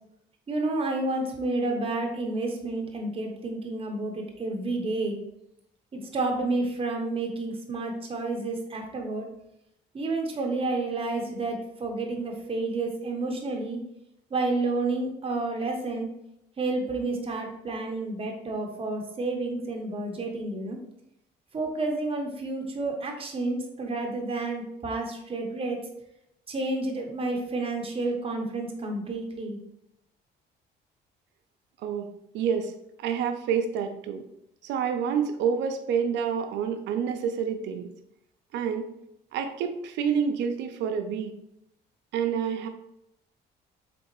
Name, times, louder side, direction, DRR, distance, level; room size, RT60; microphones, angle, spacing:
voice 1, 0.5-5.2 5.9-9.3 9.9-13.8 14.3-16.1 16.6-20.8 21.5-25.9 26.5-29.6, right 2 dB, 30° right, 2 dB, 0.9 m, -30 dB
voice 2, 32.3-32.7 33.0-34.2 34.6-37.9 38.5-38.9 39.3-41.3 42.1-42.7, right 7 dB, 80° right, 7 dB, 0.5 m, -28 dB
3.8 x 3.4 x 3.0 m, 0.80 s
cardioid pair, 100°, 18 cm